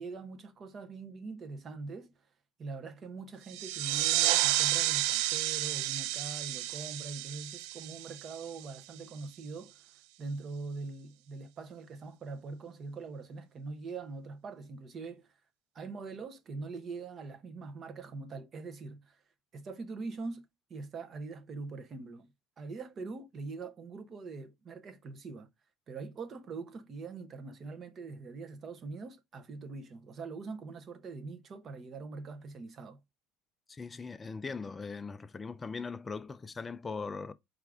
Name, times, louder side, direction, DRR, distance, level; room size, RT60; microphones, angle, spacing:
voice 1, 0.0-2.1 2.6-15.3 15.7-19.2 19.5-22.3 22.6-25.5 25.9-33.0, right 4 dB, 30° right, 0.7 m, -43 dB
sound 1, 3.5-8.8, right 15 dB, 70° right, 0.3 m, -31 dB
voice 2, 33.7-37.3, left 4 dB, 15° left, 0.3 m, -40 dB
4.6 x 2.5 x 3.5 m
cardioid pair, 155°, 0 cm